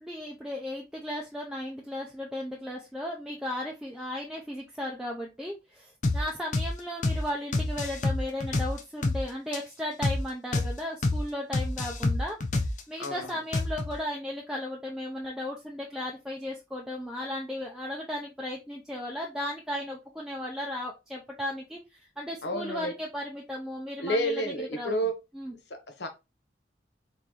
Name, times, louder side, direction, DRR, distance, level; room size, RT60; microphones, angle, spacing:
voice 1, 0.0-12.4 12.9-21.8 22.2-24.4 24.8-25.0 25.3-25.5, left 1 dB, 5° right, 0.5 m, -35 dB
sound 1, 6.0-6.2 6.5-6.7 7.0-7.2 7.5-9.2 9.5-9.6 10.0-10.2 10.5-10.7 11.0-11.2 11.5-13.1 13.5-13.9, left 2 dB, 45° left, 0.6 m, -27 dB
voice 2, 13.0-13.4 22.4-22.9 24.0-25.2 25.7-26.1, equal, 85° left, 1.0 m, -30 dB
3.9 x 3.8 x 3.0 m
head